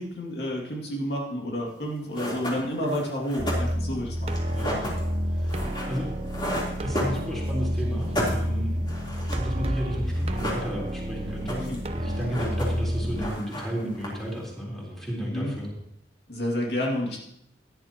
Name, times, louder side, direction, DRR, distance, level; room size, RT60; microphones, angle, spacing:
voice 1, 0.0-4.3 5.6-5.8 11.7-11.8 15.2-15.5 16.3-17.2, equal, 65° left, -2 dB, 2.4 m, -30 dB
sound 1, 1.8-1.9 2.1-7.6 7.9-9.5 9.8-9.9 10.1-11.0 11.3-11.9 12.2-12.9 13.2-14.4, equal, 25° left, 3.5 m, -33 dB
sound 2, 3.4-13.2, equal, 35° right, 0.9 m, -29 dB
voice 2, 5.3-6.1 6.8-15.7, equal, ahead, -5 dB, 4.1 m, -33 dB
17.0 x 11.0 x 3.0 m, 0.77 s
head